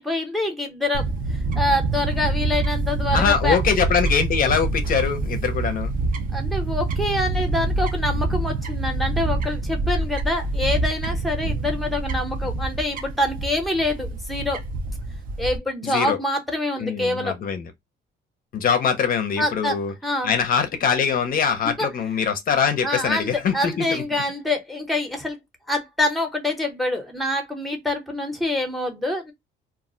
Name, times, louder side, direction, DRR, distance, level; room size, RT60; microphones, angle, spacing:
voice 1, 0.0-3.6 6.3-14.6 15.4-17.4 19.4-19.8 20.0-20.3 21.8-21.9 22.8-25.4 25.7-29.3, left 1 dB, ahead, 0.6 m, -26 dB
Fowl / Bird, 0.9-15.6, right 2 dB, 45° right, 0.4 m, -26 dB
voice 2, 3.1-5.9 15.8-16.2 16.8-17.7 18.5-19.9 20.2-24.0, left 6 dB, 45° left, 0.5 m, -23 dB
2.3 x 2.1 x 3.6 m
cardioid pair, 165°, 20 cm